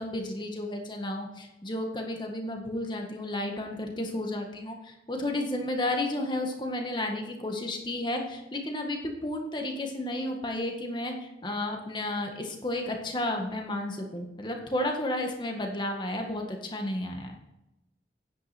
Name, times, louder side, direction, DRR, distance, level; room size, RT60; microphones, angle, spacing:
voice 1, 0.0-17.4, left 1 dB, 25° left, 2 dB, 1.7 m, -32 dB
10.0 x 9.2 x 4.4 m, 0.90 s
head